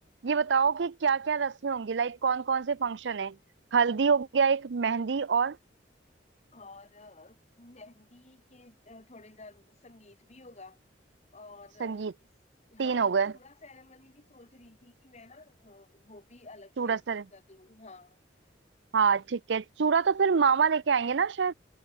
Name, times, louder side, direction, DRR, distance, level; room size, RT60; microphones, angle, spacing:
voice 1, 0.2-3.4 3.7-5.6 11.8-12.1 12.8-13.3 16.8-17.2 18.9-21.5, right 6 dB, 75° right, 0.5 m, -26 dB
voice 2, 6.5-10.8 11.3-12.3 12.7-17.0 17.3-18.2, left 2 dB, 40° left, 3.4 m, -52 dB
head